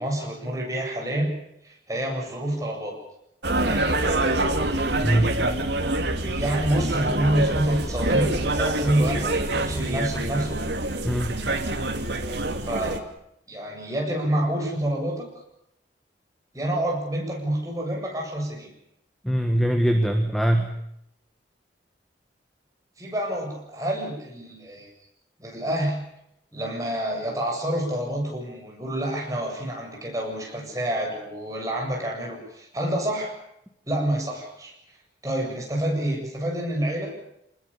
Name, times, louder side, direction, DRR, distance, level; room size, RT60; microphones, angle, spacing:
voice 1, 0.0-1.4 1.6-3.0 3.6-4.4 6.3-10.6 12.7-13.0 13.5-15.3 16.5-18.7 23.0-24.9 25.4-26.0 26.5-33.4 33.9-34.7 35.2-37.1, right 1 dB, 15° right, 0 dB, 7.8 m, -28 dB
sound 1, 3.4-13.0, right 2 dB, 65° right, 2.8 m, -26 dB
voice 2, 5.0-5.4 11.0-11.3 19.2-20.8, right 1 dB, ahead, 5 dB, 1.6 m, -22 dB
27.0 x 20.5 x 7.2 m, 0.78 s
head